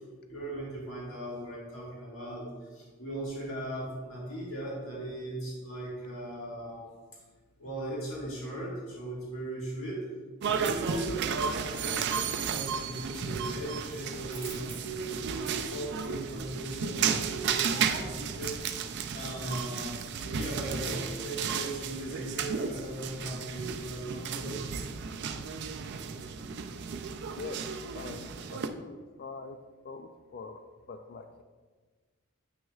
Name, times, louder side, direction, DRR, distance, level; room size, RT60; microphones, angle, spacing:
voice 1, 0.3-2.4 2.7-6.9 7.6-10.0 10.4-18.7 19.1-24.7, right 1 dB, 80° left, -5 dB, 1.7 m, -38 dB
sound 1, 10.4-28.7, right 6 dB, 55° right, 0.4 m, -34 dB
sound 2, 12.6-13.2 13.5-19.0, right 4 dB, 30° right, 1.5 m, -51 dB
voice 2, 27.3-29.6 29.8-30.6 30.9-31.4, left 4 dB, 45° left, 6 dB, 0.3 m, -44 dB
8.1 x 6.1 x 2.4 m, 1.4 s
head